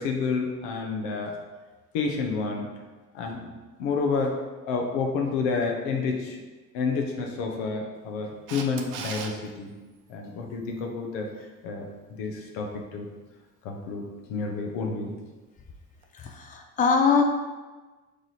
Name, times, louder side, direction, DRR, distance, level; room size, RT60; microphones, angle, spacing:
voice 1, 0.0-1.4 1.9-2.7 3.1-3.5 3.8-4.3 4.6-6.4 6.7-9.7 10.1-11.3 11.6-13.1 13.6-15.2, left 4 dB, 65° left, 2 dB, 0.8 m, -29 dB
Camera, 8.5-9.3 16.0-16.1, right 6 dB, 70° right, 0.6 m, -36 dB
voice 2, 16.1-17.2, left 5 dB, 20° left, 3 dB, 0.5 m, -22 dB
3.7 x 3.3 x 4.1 m, 1.3 s
figure-of-eight pair, 50°, 43 cm